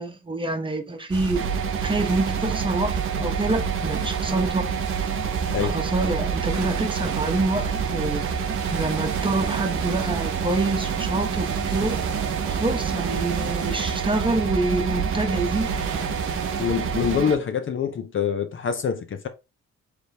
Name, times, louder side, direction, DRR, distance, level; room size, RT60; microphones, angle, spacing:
voice 1, 0.0-1.5 1.8-4.7 5.6-8.3 8.7-12.0 12.5-16.1, right 2 dB, 15° right, 0.9 m, -27 dB
sound 1, 1.1-17.2, right 6 dB, 70° right, 1.0 m, -30 dB
sound 2, 1.4-17.4, right 7 dB, 45° right, 0.7 m, -30 dB
voice 2, 16.6-19.3, left 7 dB, 40° left, 0.6 m, -25 dB
4.9 x 3.3 x 2.7 m
cardioid pair, 90°, 30 cm